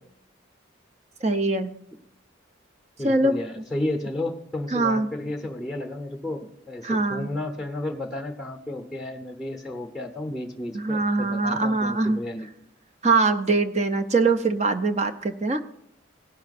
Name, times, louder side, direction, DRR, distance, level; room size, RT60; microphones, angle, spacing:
voice 1, 1.2-1.7 3.0-3.4 4.7-5.1 6.8-7.3 10.7-12.2 13.0-15.6, right 3 dB, 35° right, 8 dB, 0.6 m, -22 dB
voice 2, 3.0-12.5, left 1 dB, ahead, 3 dB, 0.8 m, -32 dB
17.0 x 5.7 x 4.1 m, 0.72 s
head